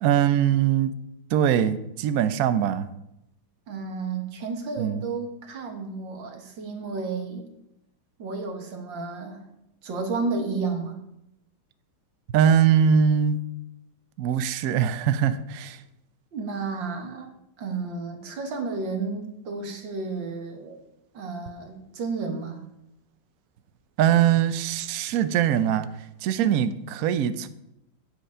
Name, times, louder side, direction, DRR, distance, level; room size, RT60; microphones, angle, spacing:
voice 1, 0.0-0.9 1.3-2.9 4.8-5.0 12.3-13.4 14.2-15.8 24.0-25.9 26.2-27.5, right 9 dB, 90° right, 11 dB, 0.7 m, -22 dB
voice 2, 3.7-7.5 8.2-9.4 9.8-11.0 16.3-17.3 17.6-20.8 21.1-22.6, right 4 dB, 60° right, 4 dB, 2.1 m, -32 dB
9.1 x 8.2 x 5.5 m, 0.83 s
omnidirectional pair, 2.4 m